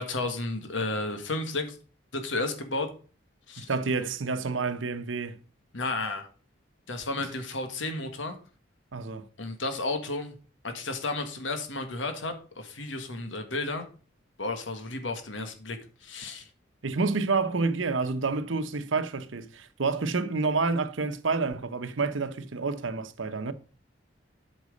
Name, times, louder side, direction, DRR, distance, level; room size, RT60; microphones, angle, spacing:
voice 1, 0.0-1.8 2.1-2.9 3.5-3.7 5.7-6.3 6.9-8.4 9.4-10.3 10.6-13.9 14.4-16.4, left 2 dB, 85° left, 1.7 m, -32 dB
voice 2, 3.6-5.4 8.9-9.3 16.8-23.5, right 4 dB, 90° right, 0.9 m, -29 dB
8.2 x 6.1 x 5.2 m
head